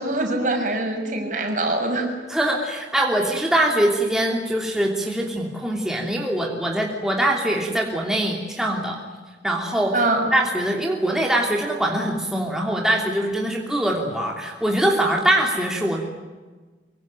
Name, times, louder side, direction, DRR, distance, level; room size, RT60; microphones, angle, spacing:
voice 1, 0.0-2.1 9.9-10.2, right 2 dB, 45° right, 3 dB, 6.8 m, -23 dB
voice 2, 2.3-9.0 9.4-10.0 10.3-16.0, right 1 dB, 5° right, -1 dB, 2.9 m, -23 dB
24.5 x 24.5 x 9.2 m, 1.3 s
head